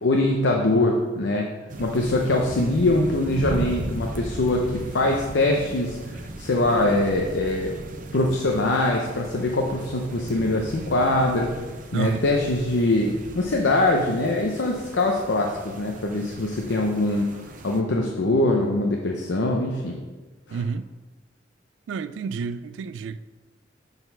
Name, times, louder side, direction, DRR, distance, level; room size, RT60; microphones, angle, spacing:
voice 1, 0.0-1.5 1.8-7.7 8.1-11.5 11.9-17.3 17.6-20.0 20.5-20.6, left 2 dB, 75° left, 0.7 m, -23 dB
sound 1, 1.7-17.8, right 1 dB, 45° right, 0.6 m, -37 dB
voice 2, 11.9-12.2 20.5-20.8 21.9-23.2, right 5 dB, 90° right, 0.3 m, -29 dB
7.0 x 4.0 x 5.4 m
head